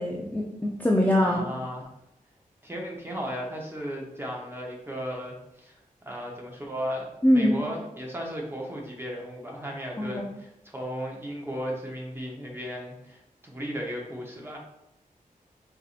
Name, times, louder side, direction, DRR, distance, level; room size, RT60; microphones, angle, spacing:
voice 1, 0.0-1.5 7.2-7.5 10.0-10.2, left 1 dB, 10° left, -2 dB, 0.4 m, -23 dB
voice 2, 1.2-1.8 2.6-5.8 6.0-14.6, equal, 15° right, -1 dB, 0.8 m, -35 dB
4.6 x 2.6 x 2.4 m, 0.86 s
wide cardioid pair, 95°, 15 cm